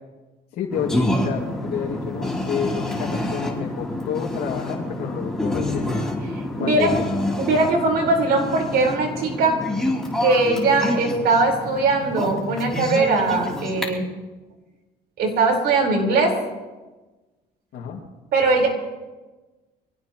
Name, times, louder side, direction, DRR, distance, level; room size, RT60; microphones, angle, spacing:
voice 1, 0.6-5.9 6.6-7.1 17.7-18.0, left 7 dB, 75° left, -3 dB, 2.4 m, -29 dB
sound 1, 0.7-13.8, left 1 dB, 5° left, 3.4 m, -27 dB
voice 2, 6.3-6.9 7.4-9.6 10.2-14.1 15.2-16.3 18.3-18.7, right 3 dB, 70° right, 1 dB, 4.7 m, -20 dB
24.0 x 18.0 x 3.1 m, 1.2 s
cardioid pair, 110°, 17 cm